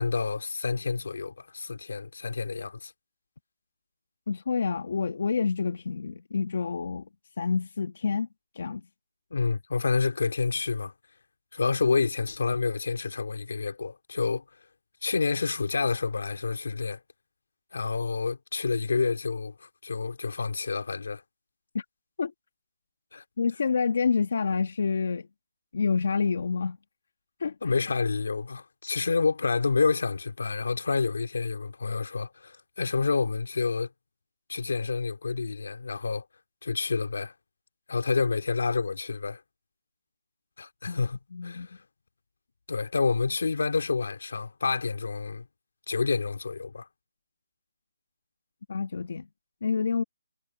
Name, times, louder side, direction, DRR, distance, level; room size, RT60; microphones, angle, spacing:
voice 1, 0.0-2.9 9.3-10.9 11.5-14.4 15.0-17.0 17.7-21.2 23.1-23.2 27.6-33.9 34.5-36.3 36.6-37.3 37.9-39.4 40.6-41.8 42.7-45.5 45.9-46.9, left 4 dB, 65° left, 2.6 m, -28 dB
voice 2, 4.3-7.1 7.4-8.3 8.6-8.8 21.7-21.8 22.2-22.3 23.4-25.3 25.7-26.8 27.4-27.6 40.9-41.0 41.3-41.7 48.7-49.3 49.6-50.0, left 5 dB, 50° left, 1.9 m, -28 dB
hypercardioid pair, 175°, 0 cm